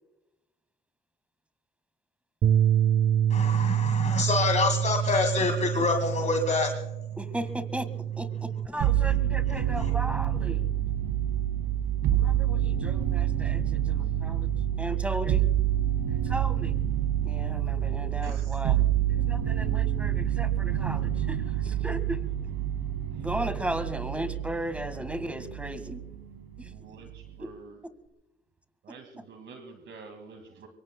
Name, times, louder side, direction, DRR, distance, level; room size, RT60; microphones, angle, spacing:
Bass guitar, 2.4-8.7, right 10 dB, 55° right, 0.6 m, -26 dB
voice 1, 3.3-6.8 8.7-8.9 9.5-9.9, left 3 dB, 35° left, 2.0 m, -27 dB
voice 2, 7.2-7.9 8.2-10.7 12.1-15.5 16.2-16.7 17.2-18.9 19.2-22.2 23.2-26.0 26.6-27.0 27.4-27.5, right 1 dB, 5° right, 1.6 m, -36 dB
sound 1, 8.8-26.2 26.6-27.3, right 11 dB, 90° right, 1.3 m, -27 dB
voice 3, 18.2-18.6 26.8-27.8 28.8-30.7, right 4 dB, 70° right, 2.1 m, -47 dB
24.5 x 23.0 x 2.2 m
cardioid pair, 90°, 20 cm